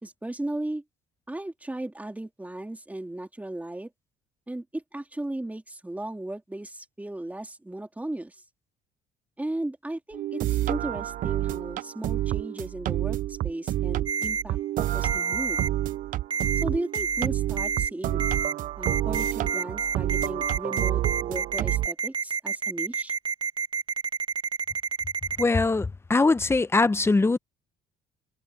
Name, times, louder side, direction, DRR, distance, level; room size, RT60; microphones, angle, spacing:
voice 1, 0.0-0.8 1.3-3.9 4.5-8.3 9.4-15.6 16.6-18.2 18.8-23.1, right 1 dB, 10° right, 3.4 m, -36 dB
sound 1, 10.1-21.9, right 14 dB, 55° right, 0.4 m, -29 dB
Ringtone, 14.1-14.4 15.0-15.7 16.3-16.6 16.9-17.3 17.6-17.9 18.2-18.5 18.8-25.4, right 5 dB, 25° right, 1.8 m, -28 dB
voice 2, 25.4-27.4, left 3 dB, 15° left, 0.7 m, -22 dB
cardioid pair, 110°, 17 cm